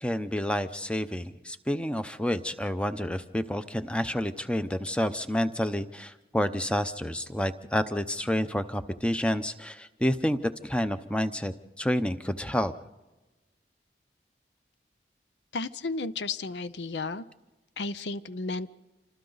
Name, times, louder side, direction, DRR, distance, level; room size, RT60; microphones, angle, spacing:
voice 1, 0.0-12.7, equal, 5° left, 10 dB, 0.7 m, -29 dB
voice 2, 15.5-17.2 17.8-18.7, left 3 dB, 75° left, 14 dB, 0.6 m, -33 dB
28.0 x 25.5 x 4.0 m, 1.1 s
head